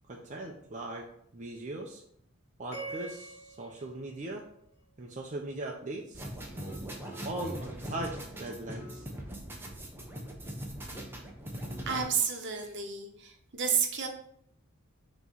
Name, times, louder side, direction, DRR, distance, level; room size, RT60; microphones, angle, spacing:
voice 1, 0.1-1.1 1.3-2.0 2.6-4.4 5.0-6.3 7.2-9.1, right 2 dB, 35° right, 0 dB, 0.7 m, -39 dB
sound 1, 2.7-5.1, right 2 dB, 50° left, 1.8 m, -45 dB
sound 2, 6.1-12.0, equal, 10° right, 0.9 m, -40 dB
voice 2, 11.8-14.1, right 6 dB, 55° right, 4 dB, 1.0 m, -31 dB
6.0 x 3.1 x 5.4 m, 0.68 s
head